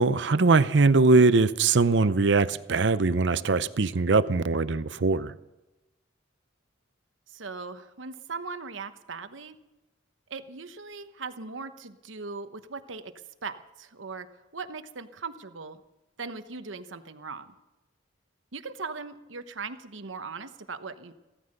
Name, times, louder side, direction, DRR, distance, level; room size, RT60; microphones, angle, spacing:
voice 1, 0.0-5.4, right 3 dB, 65° right, 0.6 m, -21 dB
voice 2, 7.3-9.6 10.3-13.1 13.4-14.3 14.5-15.8 16.2-17.5 18.5-21.1, right 4 dB, 90° right, 1.1 m, -39 dB
16.0 x 13.5 x 6.6 m
head